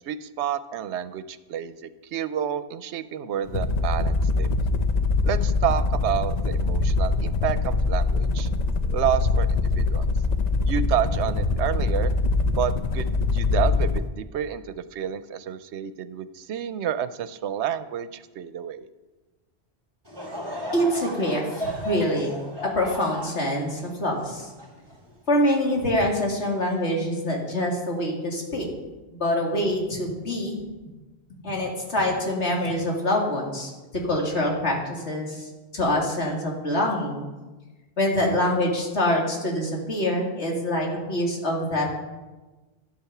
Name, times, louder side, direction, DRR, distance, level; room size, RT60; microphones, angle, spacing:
voice 1, 0.0-4.5 5.2-8.5 8.9-10.1 10.6-12.1 12.5-18.9, right 9 dB, 80° right, 14 dB, 0.9 m, -29 dB
sound 1, 3.4-14.1, left 3 dB, 45° left, 0.6 m, -23 dB
Laughter / Crowd, 20.0-25.5 26.1-26.2 27.0-27.2, equal, 20° right, 2.7 m, -35 dB
voice 2, 20.7-22.3 22.6-24.5 25.3-28.7 29.1-30.6 31.4-33.7 34.1-37.2 38.0-41.9, left 1 dB, 75° left, -1 dB, 2.5 m, -25 dB
12.0 x 8.6 x 5.9 m, 1.2 s
omnidirectional pair, 1.2 m